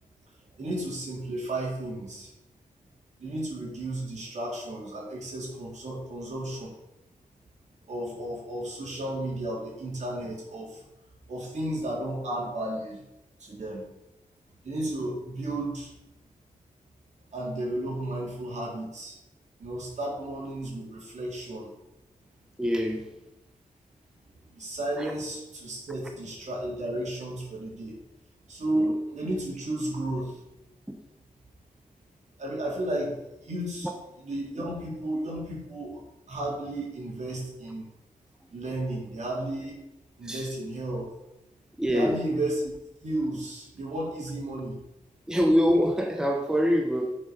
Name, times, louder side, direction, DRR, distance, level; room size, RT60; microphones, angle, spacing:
voice 1, 0.5-2.3 3.2-6.7 7.9-10.8 11.3-13.0 13.4-13.8 14.6-15.9 17.3-19.2 19.6-21.7 24.5-28.0 28.5-30.4 32.4-33.9 34.2-36.0 36.3-37.8 38.5-39.8 40.2-41.1 41.9-42.7 43.0-44.8, right 1 dB, 60° right, -3 dB, 3.8 m, -33 dB
voice 2, 22.6-23.1 25.0-25.1 28.7-29.0 30.9-31.0 33.8-33.9 40.2-40.5 41.8-42.2 45.3-47.2, equal, 5° right, 3 dB, 0.9 m, -25 dB
10.5 x 6.5 x 5.4 m, 0.91 s
wide cardioid pair, 150°, 14 cm